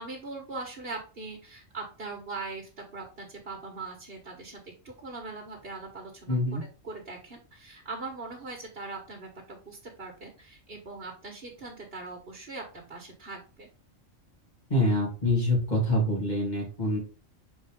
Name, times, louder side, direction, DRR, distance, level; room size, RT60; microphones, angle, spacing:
voice 1, 0.0-6.6 6.8-13.7, right 3 dB, 50° right, 0 dB, 1.6 m, -41 dB
voice 2, 6.3-6.6 14.7-17.0, left 1 dB, 35° left, -3 dB, 3.1 m, -25 dB
6.6 x 4.6 x 3.7 m, 0.34 s
omnidirectional pair, 1.3 m